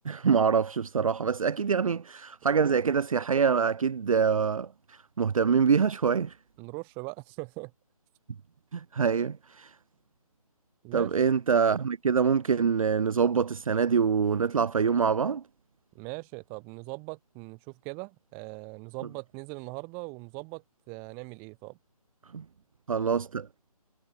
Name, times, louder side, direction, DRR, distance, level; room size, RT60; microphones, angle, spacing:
voice 1, 0.0-6.3 8.7-9.7 10.9-15.4 22.3-22.4 22.9-23.5, right 6 dB, 65° right, 0.5 m, -25 dB
voice 2, 6.6-7.7 10.8-11.1 15.9-21.8, right 33 dB, 10° right, 3.0 m, -40 dB
hypercardioid pair, 175°, 19 cm